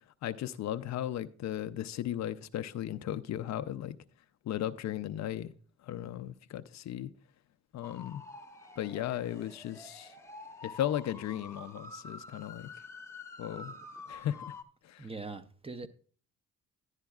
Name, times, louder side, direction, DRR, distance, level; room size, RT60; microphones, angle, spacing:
voice 1, 0.2-4.0 4.4-5.5 5.8-7.1 7.7-8.2 8.8-10.1 10.6-12.7 13.4-13.8 14.1-14.5 14.8-15.1, left 11 dB, 65° left, 0.5 m, -36 dB
sound 1, 7.8-14.6, left 3 dB, 10° left, 0.9 m, -48 dB
voice 2, 15.0-15.9, right 3 dB, 20° right, 0.7 m, -41 dB
11.5 x 9.6 x 2.3 m
cardioid pair, 90°, 30 cm